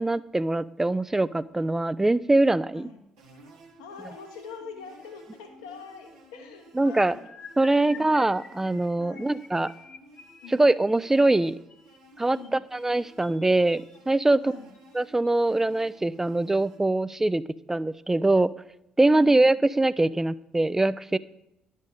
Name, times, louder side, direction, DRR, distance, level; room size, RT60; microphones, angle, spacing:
voice 1, 0.0-2.9 6.8-7.2 7.6-9.7 10.5-11.5 12.2-14.5 14.9-17.4 17.7-18.5 19.0-21.2, right 2 dB, 15° right, 17 dB, 0.3 m, -23 dB
voice 2, 2.7-3.1 3.8-7.2 7.7-8.1 9.0-9.5 10.4-10.7 12.3-12.6 14.4-14.7 19.0-19.6, left 5 dB, 80° left, 4 dB, 0.9 m, -44 dB
sound 1, 3.2-16.8, right 1 dB, 75° right, 1.4 m, -54 dB
sound 2, 6.8-14.0 14.7-15.0 15.2-15.5 15.8-16.0, left 5 dB, 40° left, 1.1 m, -49 dB
10.5 x 5.4 x 5.3 m, 0.84 s
figure-of-eight pair, 50°, 3 cm